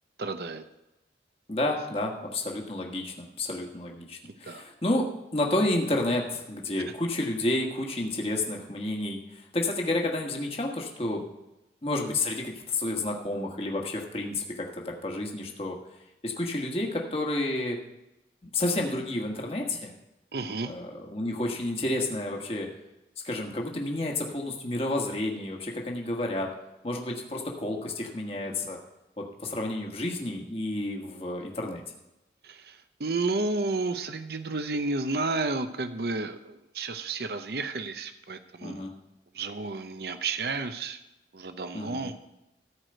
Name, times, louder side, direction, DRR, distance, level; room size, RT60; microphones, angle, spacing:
voice 1, 0.2-0.6 4.4-4.7 20.3-20.7 32.4-38.9 39.3-41.0 41.3-42.1, right 3 dB, 60° right, 9 dB, 0.7 m, -31 dB
voice 2, 1.5-11.2 11.8-15.8 16.2-17.8 18.4-19.9 20.6-22.7 23.2-26.5 26.8-28.8 29.2-31.8 38.6-38.9 41.7-42.1, left 1 dB, 35° left, 0 dB, 1.4 m, -30 dB
14.0 x 4.9 x 7.8 m, 0.94 s
head